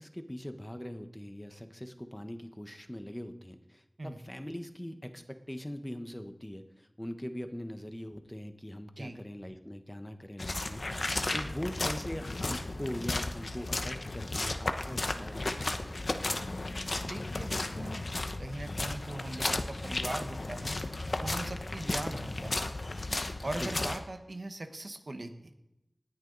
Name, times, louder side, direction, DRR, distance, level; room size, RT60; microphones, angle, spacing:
voice 1, 0.0-16.1 21.8-22.0 23.6-23.7, equal, 15° left, 7 dB, 1.2 m, -42 dB
sound 1, 10.4-24.0, left 2 dB, 75° left, 1.0 m, -34 dB
voice 2, 17.0-18.1 18.4-20.8 21.2-22.7 23.4-25.5, right 2 dB, 70° right, 6 dB, 1.3 m, -40 dB
18.5 x 10.0 x 4.0 m, 0.88 s
wide cardioid pair, 45°, 0 cm